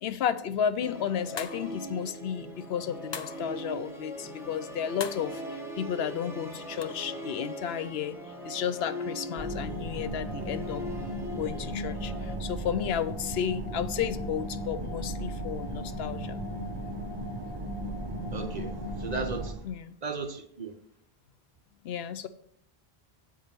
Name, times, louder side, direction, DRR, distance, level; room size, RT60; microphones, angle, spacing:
voice 1, 0.0-8.2 8.4-10.8 11.4-16.4 19.6-20.0 21.8-22.3, left 8 dB, 85° left, 13 dB, 0.8 m, -32 dB
Musical instrument, 0.8-12.4, equal, ahead, 1.4 m, -41 dB
sound 1, 1.4-1.8 3.1-3.5 5.0-5.3 6.8-6.9, left 6 dB, 50° left, 0.3 m, -39 dB
sound 2, 9.4-19.5, right 1 dB, 25° right, 1.2 m, -36 dB
voice 2, 18.3-19.6 20.0-20.7, right 4 dB, 45° right, 4 dB, 0.9 m, -36 dB
8.1 x 4.9 x 5.8 m, 0.67 s
omnidirectional pair, 1.0 m